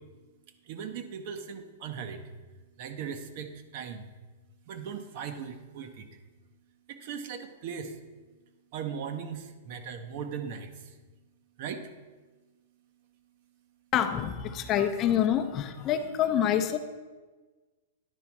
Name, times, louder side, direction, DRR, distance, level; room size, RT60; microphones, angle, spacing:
voice 1, 0.7-2.2 2.8-4.0 4.7-6.1 6.9-8.0 8.7-10.9 11.6-11.8, right 7 dB, 50° right, 7 dB, 0.8 m, -38 dB
voice 2, 13.9-16.8, left 10 dB, 30° left, 8 dB, 0.6 m, -26 dB
10.0 x 4.1 x 5.9 m, 1.3 s
hypercardioid pair, 150°, 0 cm